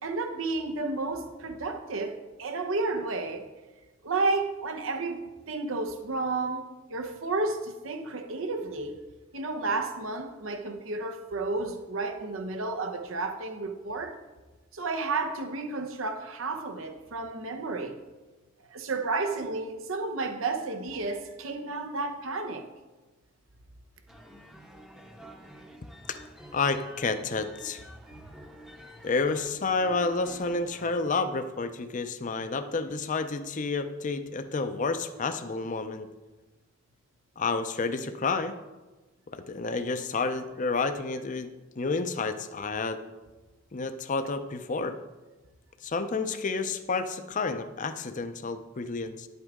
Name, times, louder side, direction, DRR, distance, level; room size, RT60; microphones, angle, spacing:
voice 1, 0.0-3.5 4.0-9.0 9.3-14.2 14.7-18.0 18.7-22.7 28.1-28.2, right 3 dB, 80° right, 0.8 m, -32 dB
sound 1, 24.1-31.0, equal, 5° right, 0.8 m, -49 dB
voice 2, 26.5-27.8 29.0-36.1 37.4-38.6 39.3-41.5 41.8-43.0 43.7-44.9 45.8-49.3, left 4 dB, 40° left, 0.5 m, -30 dB
10.0 x 8.1 x 3.6 m
head